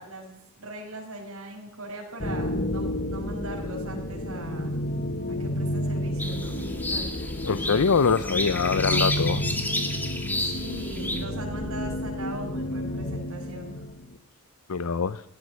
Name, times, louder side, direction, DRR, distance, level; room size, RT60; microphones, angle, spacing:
voice 1, 0.0-4.8 5.3-7.1 10.4-13.8, right 1 dB, 70° right, -1 dB, 5.6 m, -40 dB
sound 1, 2.2-14.2, left 1 dB, 40° left, 1.3 m, -31 dB
sound 2, 6.2-11.2, left 1 dB, 10° left, 2.0 m, -31 dB
voice 2, 7.4-9.4 14.7-15.2, left 5 dB, 80° left, 14 dB, 0.6 m, -24 dB
16.5 x 12.5 x 6.3 m, 0.77 s
head